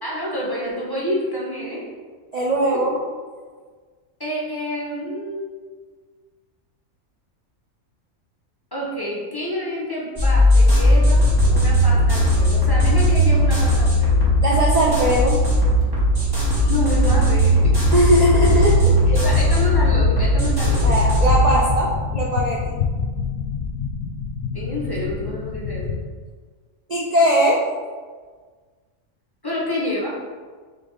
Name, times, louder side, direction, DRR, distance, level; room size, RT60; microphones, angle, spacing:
voice 1, 0.0-1.8 4.2-5.5 8.7-14.2 16.6-17.6 19.1-20.9 24.5-25.8 29.4-30.1, equal, 20° left, -5 dB, 0.7 m, -28 dB
voice 2, 2.3-3.0 14.4-15.5 17.9-19.0 20.8-22.8 26.9-27.6, right 1 dB, 75° right, -3 dB, 0.3 m, -20 dB
sound 1, 10.2-21.5, equal, 20° right, 1.2 m, -17 dB
sound 2, 17.6-26.0, left 6 dB, 75° left, 0.9 m, -27 dB
3.7 x 3.4 x 3.9 m, 1.5 s
omnidirectional pair, 1.4 m